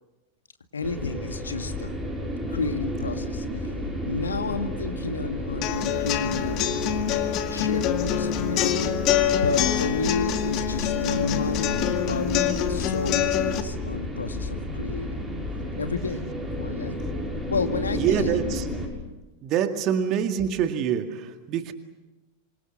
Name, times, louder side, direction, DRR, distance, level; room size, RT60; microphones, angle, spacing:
voice 1, 0.7-1.9 2.5-3.7 4.0-9.0 9.4-15.3 15.8-16.2 16.6-17.0 17.5-18.7, left 4 dB, 75° left, 7 dB, 2.0 m, -31 dB
sound 1, 0.8-18.9, left 1 dB, 10° right, 6.3 m, -32 dB
sound 2, 5.6-13.6, left 10 dB, 40° left, 1.9 m, -25 dB
voice 2, 18.0-18.6 19.4-21.7, right 8 dB, 35° right, 7 dB, 2.0 m, -25 dB
27.5 x 25.5 x 6.5 m, 1.1 s
figure-of-eight pair, 90°, 0 cm